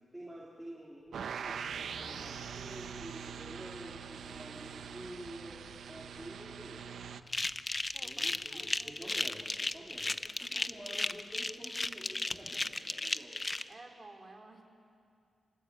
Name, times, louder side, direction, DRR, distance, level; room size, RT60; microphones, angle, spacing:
voice 1, 0.1-6.9 8.0-13.4, right 1 dB, 10° right, -4 dB, 3.9 m, -49 dB
Accelerating revving vroom, 1.0-12.0, right 3 dB, 60° right, 3.5 m, -59 dB
sound 1, 1.1-7.2, right 7 dB, 85° right, 0.9 m, -43 dB
sound 2, 7.3-13.6, left 2 dB, 20° left, 0.7 m, -35 dB
voice 2, 7.9-9.0 10.4-11.0 13.7-14.6, right 2 dB, 30° right, 2 dB, 3.5 m, -54 dB
28.5 x 19.5 x 8.7 m, 2.4 s
wide cardioid pair, 115°, 0 cm